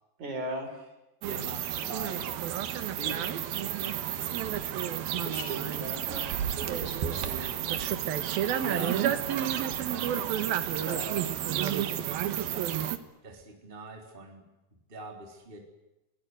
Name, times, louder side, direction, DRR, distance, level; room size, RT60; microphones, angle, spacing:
voice 1, 0.2-0.7 5.2-6.2 6.5-7.8 10.8-11.3, right 2 dB, 50° right, 5 dB, 6.3 m, -38 dB
voice 2, 1.2-2.4 3.0-4.7 7.2-7.5 8.6-10.6 11.5-12.9 13.2-14.5 14.9-15.6, right 2 dB, 15° right, 3 dB, 3.7 m, -43 dB
sound 1, 1.2-13.0, right 10 dB, 80° right, 3.3 m, -31 dB
23.5 x 20.5 x 9.7 m, 0.96 s
omnidirectional pair, 4.2 m